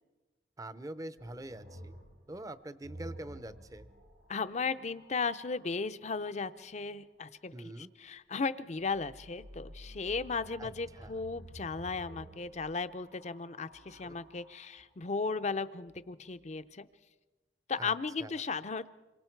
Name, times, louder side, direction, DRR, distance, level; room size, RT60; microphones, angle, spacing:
voice 1, 0.6-1.9 2.3-3.9 7.5-7.9 10.6-10.7 11.0-11.2 14.0-14.1 17.8-17.9 18.2-18.3, right 1 dB, 20° right, 14 dB, 0.6 m, -44 dB
sound 1, 1.2-5.8 8.8-14.9 15.9-16.5, right 1 dB, 75° right, 4.7 m, -52 dB
voice 2, 4.3-16.9 17.7-18.9, left 4 dB, 40° left, 13 dB, 0.6 m, -36 dB
26.5 x 24.0 x 4.6 m, 1.2 s
head